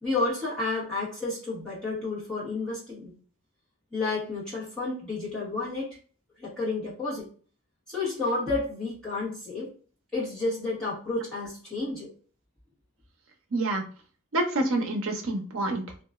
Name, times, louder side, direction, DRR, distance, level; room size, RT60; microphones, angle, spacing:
voice 1, 0.0-3.1 3.9-6.0 6.4-7.2 7.9-9.7 10.1-12.1, left 3 dB, 5° left, -10 dB, 1.5 m, -31 dB
voice 2, 13.5-13.8 14.3-16.0, right 2 dB, 80° right, 2 dB, 0.7 m, -27 dB
2.9 x 2.5 x 2.3 m, 0.41 s
head